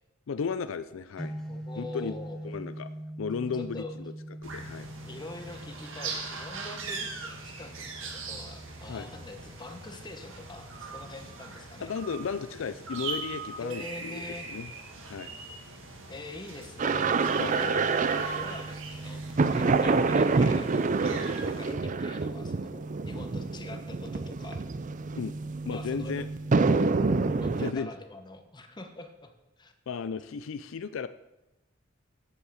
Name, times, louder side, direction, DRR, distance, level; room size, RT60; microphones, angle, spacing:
voice 1, 0.3-1.3 1.8-2.2 2.4-2.9 3.2-3.8 4.4-4.9 8.9-9.1 11.8-14.7 15.1-15.3 17.3-17.8 19.6-19.8 21.1-21.2 25.2-25.3 25.6-26.3 27.6-27.9 29.9-31.1, left 5 dB, 75° left, 13 dB, 0.4 m, -34 dB
sound 1, 1.2-13.2, right 1 dB, 5° left, 1.3 m, -44 dB
voice 2, 1.5-2.5 3.7-3.9 5.1-11.9 13.6-14.6 16.1-17.8 18.3-24.6 25.7-26.5 27.2-29.7, left 2 dB, 20° left, 5 dB, 1.1 m, -44 dB
sound 2, 4.4-21.7, right 3 dB, 75° right, 1.8 m, -41 dB
sound 3, 16.8-27.7, right 4 dB, 40° right, 0.5 m, -27 dB
8.3 x 8.2 x 7.1 m, 0.98 s
head